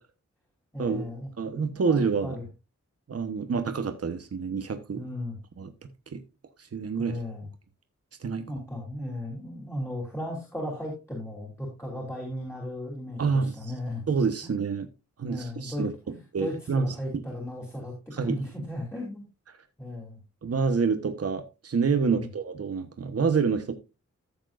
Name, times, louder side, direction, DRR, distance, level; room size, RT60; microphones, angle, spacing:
voice 1, 0.7-1.3 1.7-2.4 4.9-5.4 7.0-7.5 8.4-14.0 14.4-14.5 15.3-19.2 19.8-20.2 22.0-22.3, left 1 dB, 10° left, 3.2 m, -36 dB
voice 2, 1.4-2.4 3.1-5.0 5.6-5.7 6.1-6.2 6.7-7.2 8.2-8.4 13.2-13.7 14.1-14.9 15.2-15.9 16.3-17.2 18.1-18.4 20.4-23.7, right 5 dB, 55° right, 1.1 m, -27 dB
14.0 x 7.2 x 2.5 m
wide cardioid pair, 110°, 30 cm